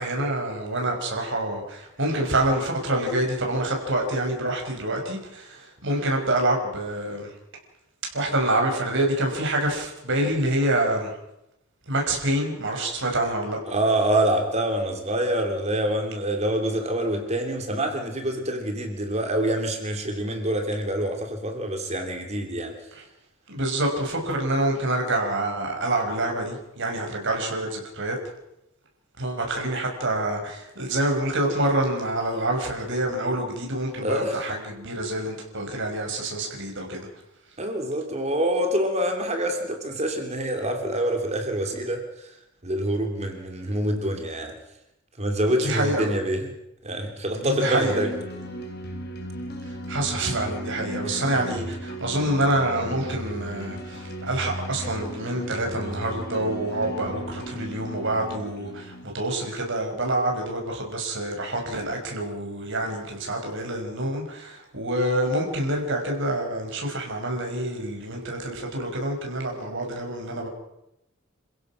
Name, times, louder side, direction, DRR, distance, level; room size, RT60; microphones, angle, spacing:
voice 1, 0.0-7.3 8.1-11.1 11.9-13.6 22.9-23.0 23.5-28.2 29.2-37.1 45.5-46.1 47.3-48.0 49.9-70.5, right 1 dB, 60° right, 1 dB, 5.9 m, -27 dB
voice 2, 13.7-22.7 34.0-34.4 37.6-42.0 42.6-44.5 45.2-46.5 46.8-48.1 51.0-51.2, right 1 dB, 35° right, 4 dB, 3.0 m, -26 dB
sound 1, 47.9-59.0, right 1 dB, 50° left, 3.6 m, -36 dB
28.0 x 16.0 x 6.1 m, 0.85 s
head